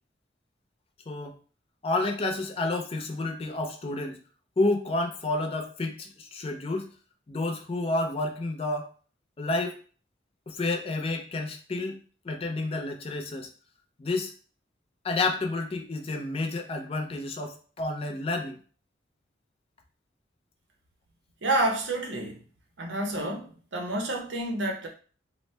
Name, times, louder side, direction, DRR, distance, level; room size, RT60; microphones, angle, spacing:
voice 1, 1.8-4.2 4.6-6.9 7.3-8.9 9.4-9.8 10.5-12.0 12.2-13.5 14.0-14.3 15.0-18.6, left 2 dB, 30° left, 0.4 m, -30 dB
voice 2, 21.4-22.4 22.8-24.9, right 1 dB, 90° right, 0.7 m, -29 dB
3.0 x 2.0 x 3.2 m
head